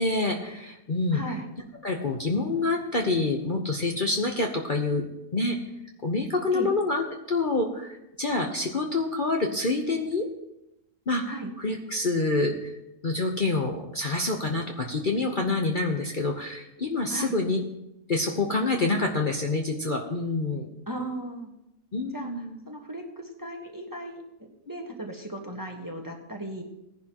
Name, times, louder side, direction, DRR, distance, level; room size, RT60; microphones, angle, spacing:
voice 1, 0.0-1.2 1.8-5.1 5.3-5.6 6.0-10.3 11.1-12.7 13.0-17.6 18.1-20.7 21.9-22.6, left 3 dB, 40° left, 1 dB, 1.0 m, -27 dB
voice 2, 1.1-1.5 6.5-6.7 11.3-11.5 17.1-17.4 20.9-21.5 22.1-24.2 24.7-26.6, right 1 dB, 15° right, 2 dB, 1.3 m, -36 dB
18.0 x 10.5 x 3.0 m, 0.87 s
omnidirectional pair, 1.6 m